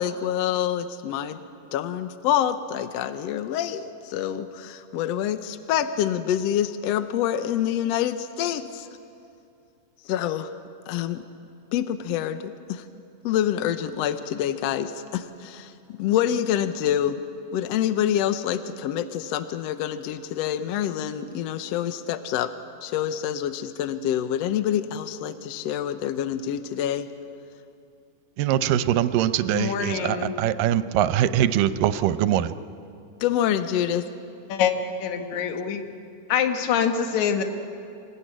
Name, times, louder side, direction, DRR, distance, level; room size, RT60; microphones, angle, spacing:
voice 1, 0.0-1.4 1.7-8.9 10.1-10.5 10.9-11.2 11.7-12.8 13.2-17.2 17.5-22.5 22.8-27.1 33.2-34.1, left 10 dB, 80° left, 10 dB, 1.5 m, -26 dB
voice 2, 28.4-32.5, right 11 dB, 80° right, 12 dB, 2.3 m, -22 dB
voice 3, 29.5-30.3 34.5-34.7 35.0-35.8 36.3-37.4, left 8 dB, 65° left, 6 dB, 2.5 m, -24 dB
25.0 x 16.5 x 9.9 m, 2.6 s
omnidirectional pair, 3.9 m